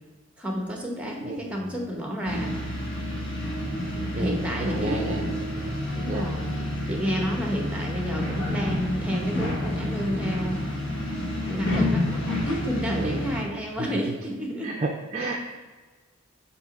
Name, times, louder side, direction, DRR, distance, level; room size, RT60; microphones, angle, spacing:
voice 1, 0.4-2.6 3.9-5.3 6.0-10.6 11.4-14.7, equal, 5° right, 0 dB, 0.9 m, -30 dB
voice 2, 1.2-1.6 4.1-5.3 5.6-5.8 6.1-6.3 13.0-13.2 13.8-13.9 14.6-15.4, right 3 dB, 30° right, 0 dB, 0.5 m, -32 dB
sound 1, 2.2-13.4, left 1 dB, 55° left, 1.3 m, -29 dB
7.9 x 2.9 x 5.2 m, 1.3 s
head